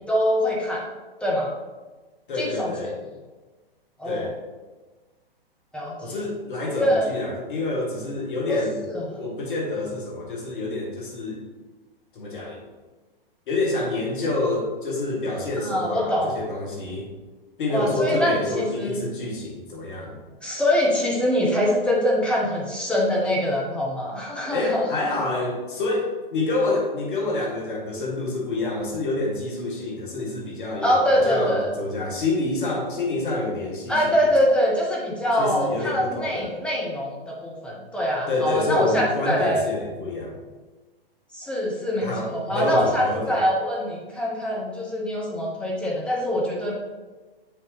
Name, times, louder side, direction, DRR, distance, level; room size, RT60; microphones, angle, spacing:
voice 1, 0.1-0.8 1.2-1.5 2.4-2.7 4.0-4.3 5.7-6.2 6.8-7.1 8.5-8.6 8.9-9.0 15.6-16.3 17.7-19.0 20.4-25.1 30.8-31.7 33.9-39.6 41.3-46.7, equal, 5° left, -4 dB, 0.7 m, -24 dB
voice 2, 2.3-3.0 4.0-4.3 6.0-8.8 9.2-11.4 12.1-12.6 13.5-17.1 17.6-20.2 24.5-34.3 35.4-36.6 38.3-40.4 42.0-43.4, left 2 dB, 55° left, -1 dB, 1.5 m, -27 dB
6.9 x 4.6 x 3.3 m, 1.3 s
figure-of-eight pair, 115°, 30 cm